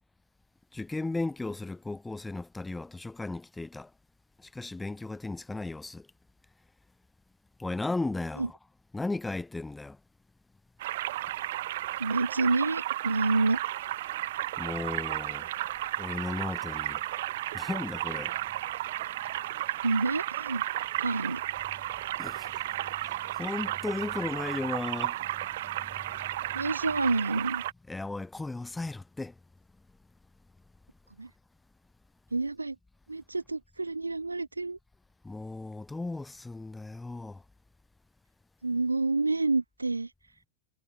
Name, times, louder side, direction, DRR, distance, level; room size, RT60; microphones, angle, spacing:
voice 1, 0.7-3.9 4.4-6.1 7.6-8.5 8.9-10.0 14.6-15.5 16.0-17.0 17.5-18.4 22.2-22.6 23.0-25.3 25.6-25.7 26.0-26.3 27.9-29.3 35.2-37.4, left 2 dB, 10° left, 4.5 m, -35 dB
sound 1, 10.8-27.7, right 15 dB, 55° right, 1.4 m, -34 dB
voice 2, 12.0-13.6 19.8-20.6 21.0-21.4 26.5-27.6 31.2-31.3 32.3-32.8 33.1-34.8 38.6-40.1, right 3 dB, 80° right, 1.2 m, -28 dB
figure-of-eight pair, 90°, 0 cm